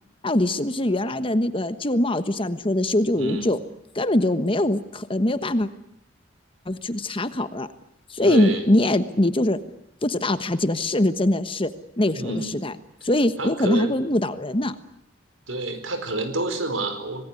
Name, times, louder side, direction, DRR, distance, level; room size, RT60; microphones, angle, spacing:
voice 1, 0.2-3.6 3.9-5.7 6.7-7.7 8.1-9.6 10.0-12.7 13.0-14.7, left 1 dB, 25° left, 11 dB, 1.3 m, -22 dB
voice 2, 3.1-3.5 8.2-8.6 12.1-12.6 13.4-13.9 15.5-17.2, right 2 dB, 80° right, 9 dB, 4.7 m, -28 dB
26.5 x 19.5 x 9.8 m, 0.77 s
head